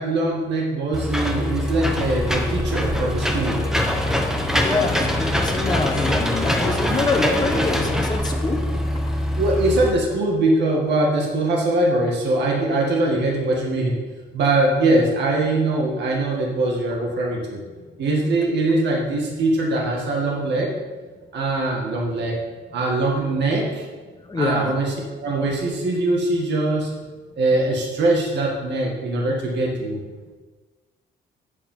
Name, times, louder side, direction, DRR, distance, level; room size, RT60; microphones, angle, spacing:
voice 1, 0.0-3.6 9.4-14.0 14.3-17.6 18.0-20.7 21.3-22.3 22.7-23.9 24.4-24.9 25.2-26.9 27.4-30.0, right 2 dB, 60° right, -1 dB, 1.9 m, -22 dB
Engine / Mechanisms, 0.9-9.9, left 1 dB, ahead, 1.1 m, -23 dB
voice 2, 4.6-8.6 24.3-24.7, left 3 dB, 20° left, 2 dB, 1.3 m, -25 dB
8.5 x 7.1 x 5.5 m, 1.4 s
cardioid pair, 125°, 20 cm